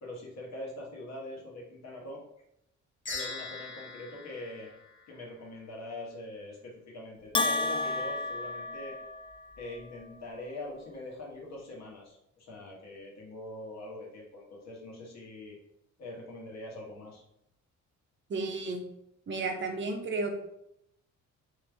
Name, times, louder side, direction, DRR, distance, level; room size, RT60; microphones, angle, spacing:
voice 1, 0.0-2.2 3.1-4.7 5.1-9.0 9.6-15.6 16.0-17.2, left 1 dB, 60° left, -2 dB, 1.3 m, -43 dB
sound 1, 3.1-5.5, left 4 dB, 40° left, 1.0 m, -42 dB
Bell, 7.3-9.5, left 3 dB, 20° left, 0.3 m, -31 dB
voice 2, 18.3-18.8 19.3-20.3, right 3 dB, 40° right, 3 dB, 0.8 m, -32 dB
3.2 x 2.9 x 3.4 m, 0.78 s
cardioid pair, 90°, 30 cm